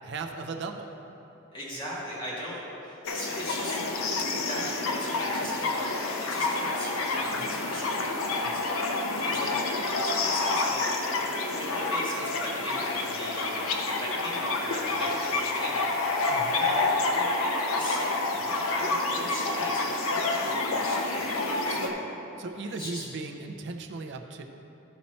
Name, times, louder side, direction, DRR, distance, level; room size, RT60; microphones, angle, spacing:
voice 1, 0.0-0.9 7.3-7.6 8.4-8.6 16.3-16.7 21.7-22.0 22.4-24.4, right 3 dB, 55° right, 4 dB, 0.5 m, -37 dB
voice 2, 1.5-3.8 4.1-11.2 11.6-21.9 22.6-23.1, equal, 25° left, -7 dB, 1.8 m, -39 dB
sound 1, 3.0-21.9, left 3 dB, 85° left, 0.7 m, -28 dB
12.5 x 4.3 x 4.2 m, 3.0 s
head